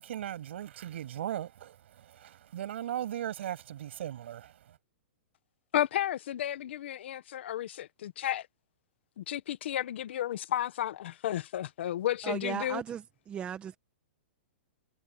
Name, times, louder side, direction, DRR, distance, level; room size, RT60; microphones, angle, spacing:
voice 1, 0.0-1.8 2.1-4.5, right 11 dB, 65° right, 7.4 m, -37 dB
voice 2, 5.7-8.5 9.2-12.8, left 12 dB, 65° left, 1.2 m, -32 dB
voice 3, 12.2-13.8, right 9 dB, 15° right, 1.2 m, -37 dB
hypercardioid pair, 155°, 7 cm